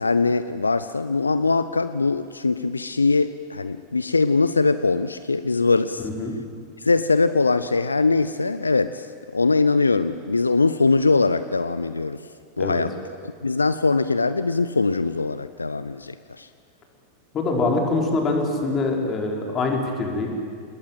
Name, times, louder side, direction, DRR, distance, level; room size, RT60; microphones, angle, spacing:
voice 1, 0.0-6.1 6.8-12.3 12.6-12.9 13.2-16.5, left 3 dB, 85° left, 13 dB, 0.6 m, -22 dB
voice 2, 6.0-6.3 12.6-12.8 17.3-20.3, left 3 dB, 30° left, 1 dB, 5.3 m, -24 dB
28.0 x 20.5 x 9.3 m, 2.1 s
figure-of-eight pair, 90°, 0 cm